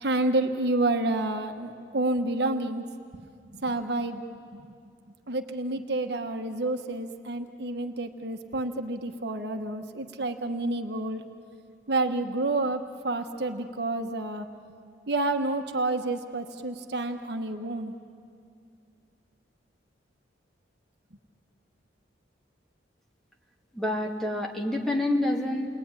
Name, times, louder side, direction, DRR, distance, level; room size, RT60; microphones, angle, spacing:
voice 1, 0.0-2.8 3.6-4.2 4.5-4.6 5.3-11.2 11.9-14.5 15.1-17.9, right 2 dB, 60° right, 6 dB, 1.2 m, -29 dB
voice 2, 23.7-25.7, left 1 dB, ahead, 0 dB, 2.3 m, -27 dB
29.5 x 20.5 x 9.7 m, 2.4 s
head